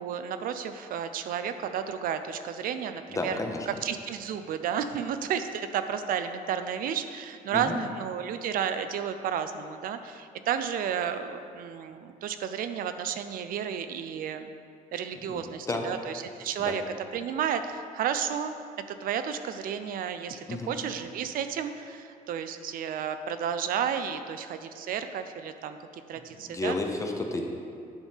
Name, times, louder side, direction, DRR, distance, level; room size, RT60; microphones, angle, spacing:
voice 1, 0.0-3.4 3.7-14.5 14.9-16.8 17.1-18.5 18.9-20.4 20.7-25.8 26.1-26.8, right 8 dB, 70° right, 9 dB, 0.4 m, -32 dB
voice 2, 3.1-3.7 7.5-7.8 15.3-15.4 15.7-15.9 16.6-16.8 20.5-20.7 26.4-27.4, left 2 dB, 20° left, 2 dB, 0.7 m, -31 dB
10.0 x 5.6 x 3.6 m, 2.3 s
cardioid pair, 145°, 15 cm